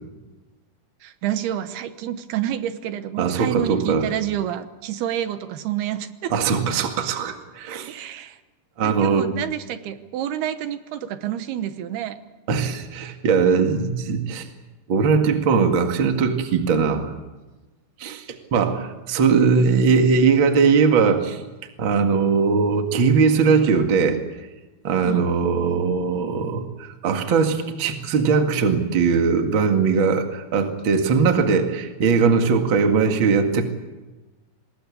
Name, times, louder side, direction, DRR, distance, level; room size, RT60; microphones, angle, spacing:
voice 1, 1.0-6.3 7.9-8.4 8.8-12.2 25.0-25.3, right 11 dB, 75° right, 10 dB, 3.0 m, -28 dB
voice 2, 3.2-4.1 6.3-7.9 8.8-9.3 12.5-14.5 14.9-17.1 18.0-21.4 21.8-24.2 24.8-33.6, right 5 dB, 40° right, 5 dB, 2.1 m, -20 dB
26.0 x 20.0 x 8.4 m, 1.2 s
omnidirectional pair, 4.7 m